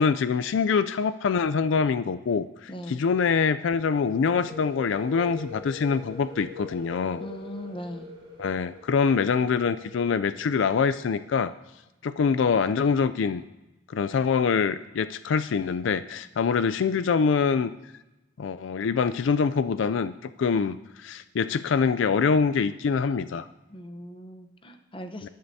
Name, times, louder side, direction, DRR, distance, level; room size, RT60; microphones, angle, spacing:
voice 1, 0.0-7.2 8.4-11.5 12.0-13.4 13.9-17.7 18.4-23.5, left 5 dB, 70° left, 13 dB, 0.4 m, -24 dB
voice 2, 2.7-3.0 7.2-8.1 23.7-25.3, equal, 25° left, 6 dB, 0.9 m, -39 dB
sound 1, 3.8-11.4, left 2 dB, 25° right, 2.4 m, -44 dB
19.5 x 11.5 x 2.8 m, 1.0 s
head